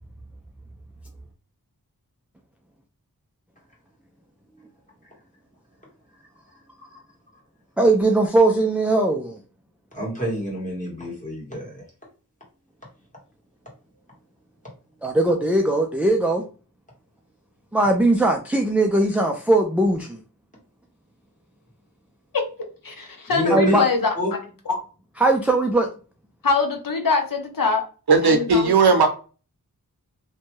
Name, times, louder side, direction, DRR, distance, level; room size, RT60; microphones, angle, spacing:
voice 1, 7.8-9.4 15.0-16.4 17.7-20.2 23.5-23.8 25.2-25.9, right 2 dB, 5° right, 0.3 m, -19 dB
voice 2, 9.9-11.8 23.3-23.8 24.2-24.3, left 1 dB, 20° left, 1.4 m, -28 dB
voice 3, 22.8-24.1 24.7-24.8 26.4-27.9 28.2-28.7, left 4 dB, 65° left, 0.7 m, -23 dB
voice 4, 28.1-29.1, right 4 dB, 90° right, 0.7 m, -16 dB
2.6 x 2.2 x 2.9 m
wide cardioid pair, 85°, 37 cm